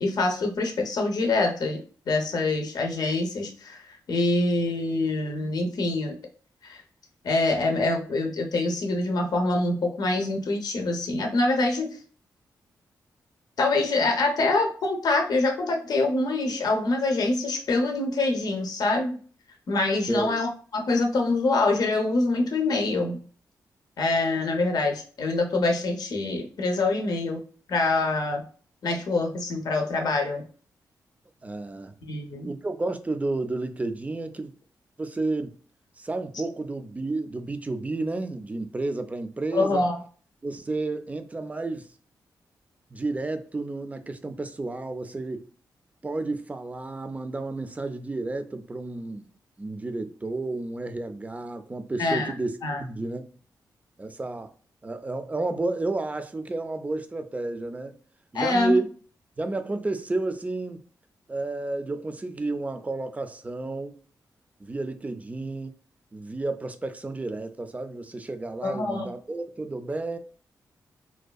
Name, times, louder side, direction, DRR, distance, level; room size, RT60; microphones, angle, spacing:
voice 1, 0.0-6.2 6.6-6.8 7.2-11.9 13.6-19.2 19.7-23.2 24.0-27.4 27.7-28.4 28.8-30.4 32.0-32.5 39.5-40.0 52.0-52.3 52.6-52.8 58.3-58.8 68.6-69.1, left 2 dB, 65° left, 0.6 m, -25 dB
voice 2, 20.1-20.4 31.4-31.9 32.4-34.5 35.0-35.5 36.0-39.9 40.4-41.9 42.9-45.5 46.0-49.2 49.6-53.3 54.0-54.5 54.8-57.9 58.3-58.9 59.4-60.8 61.3-64.0 64.6-65.7 66.1-70.2, right 2 dB, 20° right, 0.3 m, -31 dB
2.6 x 2.2 x 2.3 m
cardioid pair, 55°, 7 cm